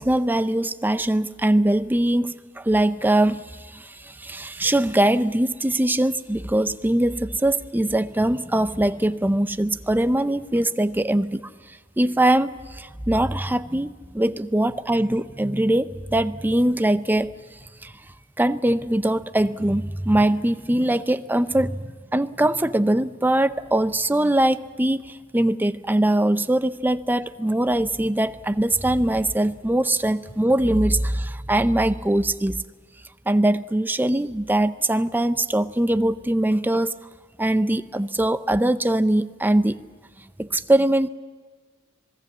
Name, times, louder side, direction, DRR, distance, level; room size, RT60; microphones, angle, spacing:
voice 1, 0.0-11.4 12.0-17.3 17.8-17.9 18.4-32.6 33.3-37.0 37.4-39.8 40.4-41.1, right 1 dB, 10° right, 12 dB, 0.6 m, -22 dB
26.0 x 20.0 x 7.3 m, 1.5 s
head